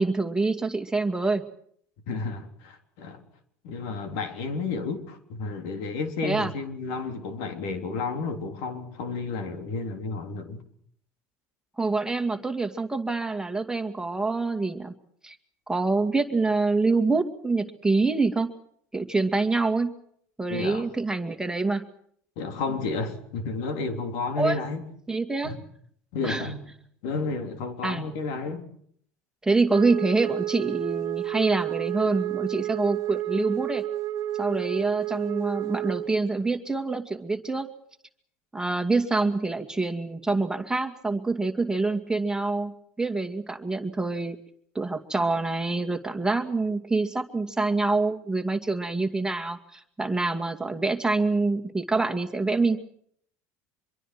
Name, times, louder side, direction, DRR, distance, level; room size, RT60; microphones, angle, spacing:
voice 1, 0.0-1.4 6.2-6.5 11.8-14.9 15.2-15.4 15.7-18.5 18.9-19.9 20.4-21.8 24.4-24.6 25.1-25.5 26.2-26.5 27.8-28.1 29.4-33.8 34.4-37.7 38.5-44.4 44.7-52.8, right 3 dB, 10° right, 6 dB, 2.3 m, -26 dB
voice 2, 2.1-3.2 3.6-10.6 20.5-20.9 22.4-24.9 25.4-25.6 26.1-26.7 27.0-28.6, left 4 dB, 70° left, 7 dB, 3.7 m, -31 dB
Wind instrument woodwind instrument, 29.7-36.1, right 14 dB, 45° right, 1.1 m, -30 dB
25.5 x 23.0 x 6.1 m, 0.65 s
hypercardioid pair, 90°, 8 cm